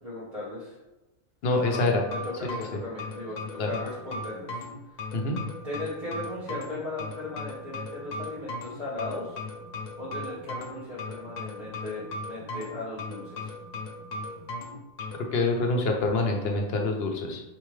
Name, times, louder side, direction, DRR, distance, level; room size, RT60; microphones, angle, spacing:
voice 1, 0.0-0.8 1.6-4.6 5.6-9.4 10.0-13.5, left 2 dB, 30° right, -11 dB, 1.3 m, -37 dB
voice 2, 1.4-2.0 3.6-3.7 5.1-5.4 15.3-17.4, left 2 dB, 55° left, 2 dB, 0.9 m, -25 dB
sound 1, 1.7-15.3, left 2 dB, 80° left, 1.1 m, -37 dB
4.5 x 3.3 x 3.2 m, 1.0 s
omnidirectional pair, 1.3 m